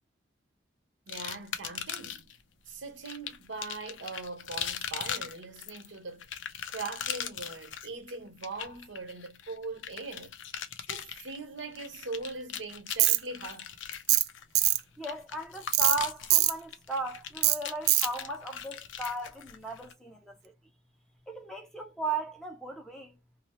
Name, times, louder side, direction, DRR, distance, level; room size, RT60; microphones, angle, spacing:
sound 1, 1.1-2.4 3.1-19.9, left 8 dB, 85° left, 0.5 m, -40 dB
voice 1, 1.1-2.3 2.7-6.3 6.7-10.4 10.9-13.7, right 3 dB, 85° right, 1.0 m, -41 dB
Tools, 13.0-13.2 14.1-14.3 14.5-14.8 15.7-16.0 16.3-16.5 17.4-17.6 17.9-18.1, right 15 dB, 55° right, 0.3 m, -22 dB
voice 2, 15.0-20.4 21.3-23.2, right 2 dB, 5° left, 0.6 m, -36 dB
2.8 x 2.0 x 2.9 m
head